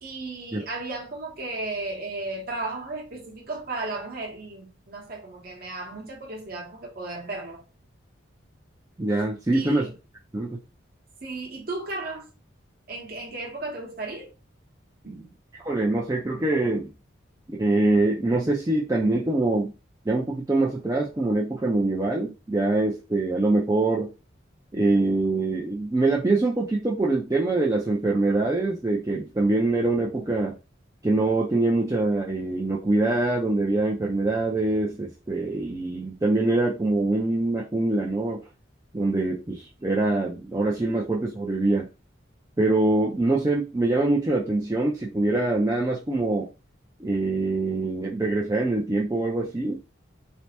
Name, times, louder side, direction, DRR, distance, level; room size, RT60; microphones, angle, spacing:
voice 1, 0.0-7.6 9.5-9.9 11.2-12.3 12.9-14.3 15.0-15.3, right 2 dB, 50° right, 0.8 m, -35 dB
voice 2, 9.0-9.9 10.3-10.6 15.6-16.9 17.5-19.7 20.1-24.1 24.7-30.5 31.0-38.4 38.9-41.9 42.6-46.5 47.0-49.8, right 2 dB, 15° right, 0.3 m, -24 dB
3.2 x 2.0 x 2.8 m
head